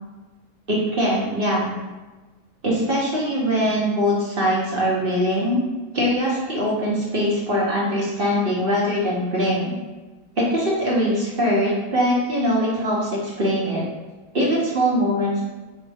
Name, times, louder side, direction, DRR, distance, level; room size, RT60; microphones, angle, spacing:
voice 1, 0.7-1.7 2.6-5.6 5.9-9.8 10.4-13.8 14.3-15.4, equal, 40° right, -5 dB, 1.0 m, -22 dB
4.9 x 3.1 x 3.4 m, 1.2 s
omnidirectional pair, 1.8 m